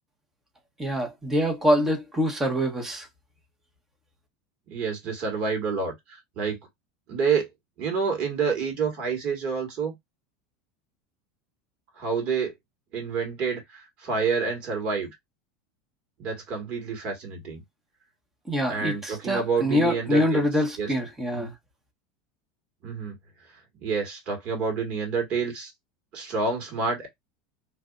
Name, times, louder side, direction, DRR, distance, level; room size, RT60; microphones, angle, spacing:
voice 1, 0.8-3.1 18.5-21.5, equal, 15° right, 1.2 m, -25 dB
voice 2, 4.7-6.6 7.1-7.5 7.8-9.9 12.0-12.5 12.9-15.1 16.2-17.6 18.7-20.5 20.8-20.9 21.3-21.4 22.8-23.2 23.8-25.7 26.1-27.1, right 5 dB, 45° right, 2.3 m, -28 dB
3.3 x 2.7 x 2.5 m
supercardioid pair, 120°, 3 cm